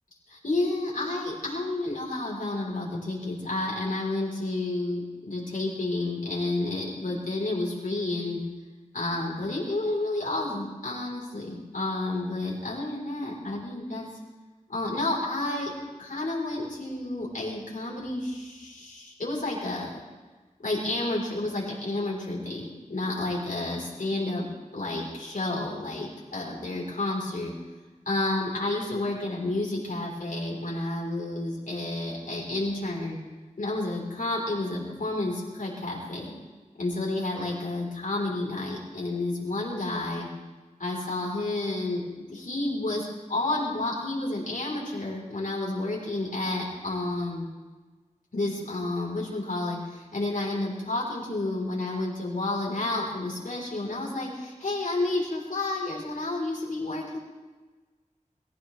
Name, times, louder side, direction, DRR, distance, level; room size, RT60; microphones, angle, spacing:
voice 1, 0.3-8.4 8.9-14.1 14.7-15.7 16.0-20.0 20.6-24.5 24.7-27.5 28.1-33.2 33.6-36.3 36.8-40.3 40.8-47.5 48.3-57.2, left 2 dB, 90° left, -4 dB, 4.1 m, -30 dB
23.0 x 15.0 x 3.3 m, 1.3 s
wide cardioid pair, 60°, 13 cm